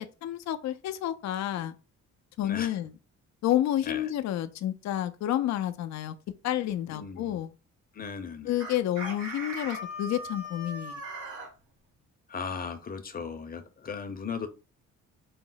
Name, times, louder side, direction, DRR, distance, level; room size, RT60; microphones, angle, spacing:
voice 1, 0.0-1.7 2.4-2.9 3.4-6.1 6.4-7.5 8.4-11.0, left 12 dB, 65° left, 0.5 m, -30 dB
voice 2, 2.4-2.8 3.9-4.0 6.9-7.4 7.9-8.5 12.3-14.5, left 5 dB, 30° left, 0.7 m, -37 dB
Chicken rooster, 8.6-11.5, right 1 dB, 70° right, 1.5 m, -39 dB
5.0 x 2.0 x 3.8 m
cardioid pair, 90°, 30 cm